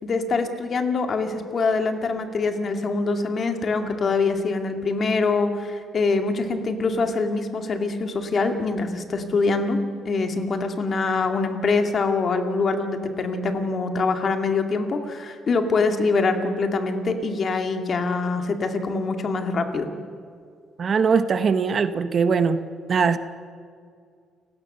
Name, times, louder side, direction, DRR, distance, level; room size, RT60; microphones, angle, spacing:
voice 1, 0.0-9.8 10.1-19.9, left 3 dB, 40° left, 5 dB, 2.2 m, -24 dB
voice 2, 20.8-22.6 22.9-23.2, right 5 dB, 40° right, 11 dB, 1.0 m, -21 dB
29.5 x 17.0 x 6.7 m, 2.2 s
cardioid pair, 135°, 0 cm